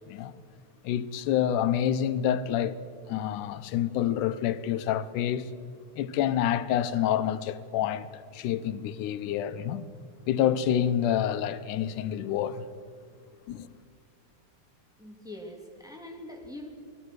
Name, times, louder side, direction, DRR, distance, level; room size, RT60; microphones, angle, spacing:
voice 1, 0.8-2.8 3.1-5.5 6.0-9.8 10.3-12.7 13.5-13.7, left 10 dB, 90° left, 2.4 m, -28 dB
voice 2, 15.0-16.7, left 1 dB, ahead, 2.7 m, -43 dB
27.0 x 20.0 x 6.4 m
omnidirectional pair, 3.5 m